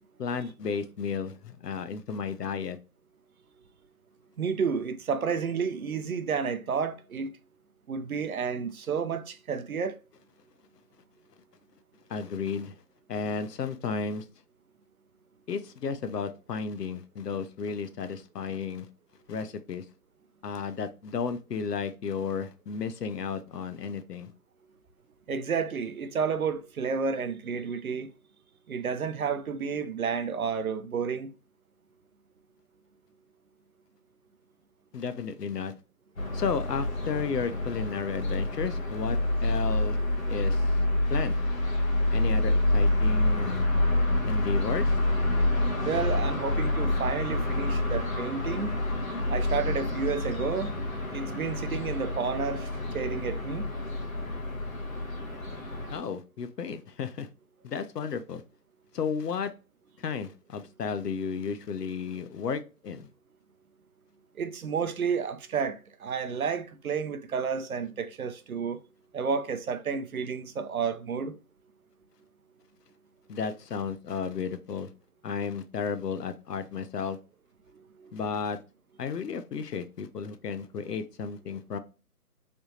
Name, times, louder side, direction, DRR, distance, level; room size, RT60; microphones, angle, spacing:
voice 1, 0.2-2.8 12.1-12.7 13.1-14.2 15.5-18.9 19.3-19.8 20.4-24.3 34.9-35.7 36.3-40.0 40.3-40.7 41.1-41.4 42.1-43.6 44.3-44.9 55.9-57.3 57.6-58.4 58.9-59.5 60.0-63.1 73.3-74.9 75.2-77.2 78.1-78.6 79.0-81.8, left 6 dB, 85° left, 0.7 m, -33 dB
voice 2, 4.4-7.3 7.9-10.0 25.3-28.1 28.7-31.3 45.8-48.8 49.3-50.7 51.1-52.7 52.9-53.7 64.4-68.8 69.1-71.4 78.0-78.1, right 6 dB, 65° right, 0.6 m, -31 dB
sound 1, 36.2-56.0, left 1 dB, 55° left, 1.2 m, -28 dB
3.4 x 2.9 x 2.6 m
hypercardioid pair, 170°, 47 cm